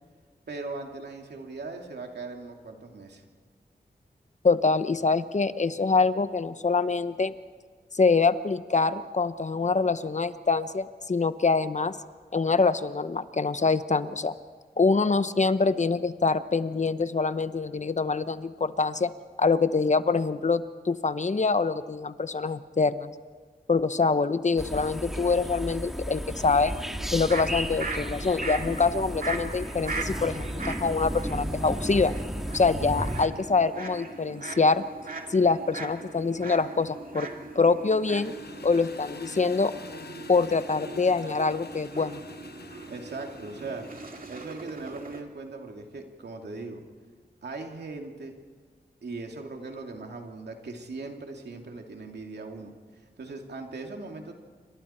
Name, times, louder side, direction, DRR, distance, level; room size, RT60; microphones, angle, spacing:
voice 1, 0.5-3.2 42.9-43.9 44.3-46.8 47.4-48.4 49.0-52.7 53.2-54.3, right 3 dB, 90° right, 2 dB, 2.6 m, -39 dB
voice 2, 4.4-7.3 7.9-12.0 12.3-14.3 14.8-19.1 19.4-23.1 23.7-26.7 27.1-32.1 32.5-34.8 35.3-37.3 37.5-38.3 38.6-39.7 40.3-42.2, left 4 dB, 45° left, 12 dB, 0.9 m, -25 dB
sound 1, 24.6-33.3, equal, ahead, 2.0 m, -34 dB
sound 2, 26.2-45.2, right 3 dB, 55° right, 2.3 m, -40 dB
Engine, 38.2-44.7, left 5 dB, 75° left, 1.0 m, -47 dB
27.5 x 25.5 x 4.4 m, 1.5 s
wide cardioid pair, 65°, 17 cm